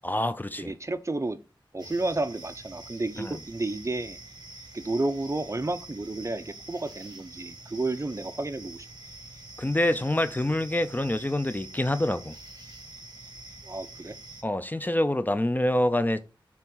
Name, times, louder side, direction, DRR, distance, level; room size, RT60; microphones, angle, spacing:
voice 1, 0.0-0.7 3.2-3.4 9.6-12.3 14.4-16.2, left 1 dB, 20° left, 0.5 m, -26 dB
voice 2, 0.6-1.4 1.7-4.2 4.7-8.9 13.6-14.2, right 2 dB, 35° right, 0.6 m, -31 dB
sound 1, 1.8-14.4, right 2 dB, 50° right, 1.8 m, -46 dB
7.0 x 3.5 x 3.9 m
wide cardioid pair, 70°, 9 cm